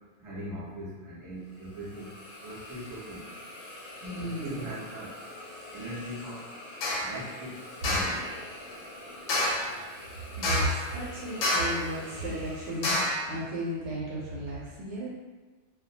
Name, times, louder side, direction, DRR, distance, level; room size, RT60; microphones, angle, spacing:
voice 1, 0.2-2.1 2.4-3.2 4.2-5.1 5.7-6.5 7.0-8.2, equal, 25° right, -8 dB, 0.8 m, -40 dB
Hiss, 1.4-13.5, left 1 dB, 60° left, 0.4 m, -45 dB
voice 2, 4.0-4.7 10.4-15.1, equal, 70° right, -6 dB, 0.9 m, -34 dB
sound 1, 6.8-7.1 7.8-8.2 9.3-9.7 10.4-10.9 11.4-11.9 12.8-13.3, left 1 dB, 90° left, 0.9 m, -28 dB
2.2 x 2.1 x 2.7 m, 1.3 s
omnidirectional pair, 1.3 m